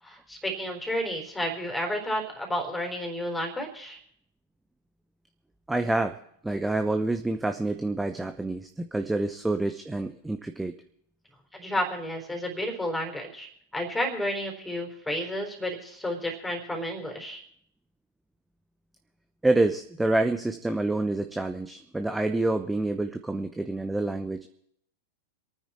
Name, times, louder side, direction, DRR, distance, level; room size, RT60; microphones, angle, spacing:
voice 1, 0.0-4.0 11.5-17.4, equal, 10° left, 3 dB, 4.2 m, -31 dB
voice 2, 5.7-10.8 19.4-24.5, right 2 dB, 5° right, 7 dB, 0.9 m, -27 dB
26.5 x 9.5 x 4.4 m, 0.69 s
hypercardioid pair, 100°, 0 cm